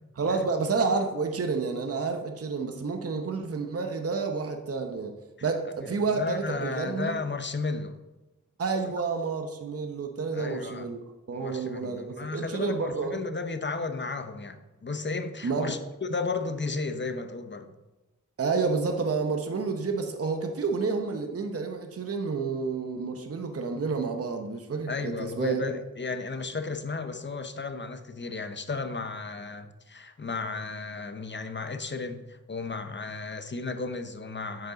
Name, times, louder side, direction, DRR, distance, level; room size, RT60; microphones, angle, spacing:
voice 1, 0.2-5.1 5.4-7.2 8.6-11.0 11.3-13.2 15.4-15.7 18.4-25.6, right 4 dB, 45° right, 4 dB, 0.9 m, -29 dB
voice 2, 5.8-8.0 8.8-9.0 10.3-10.9 11.3-17.7 24.9-34.7, left 4 dB, 35° left, 8 dB, 0.8 m, -34 dB
9.1 x 5.3 x 4.0 m, 1.1 s
cardioid pair, 55°, 32 cm